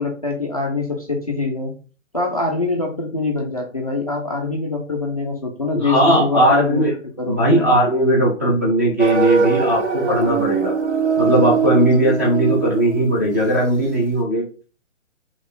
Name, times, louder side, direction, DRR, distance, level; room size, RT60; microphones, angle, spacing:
voice 1, 0.0-1.7 2.1-7.7, left 3 dB, 30° left, 0 dB, 0.4 m, -24 dB
voice 2, 5.7-6.9 7.3-10.7 11.2-14.4, right 1 dB, 15° right, -4 dB, 0.6 m, -18 dB
sound 1, 9.0-13.8, right 6 dB, 60° right, 0.8 m, -21 dB
4.0 x 3.0 x 3.8 m, 0.37 s
hypercardioid pair, 170°, 39 cm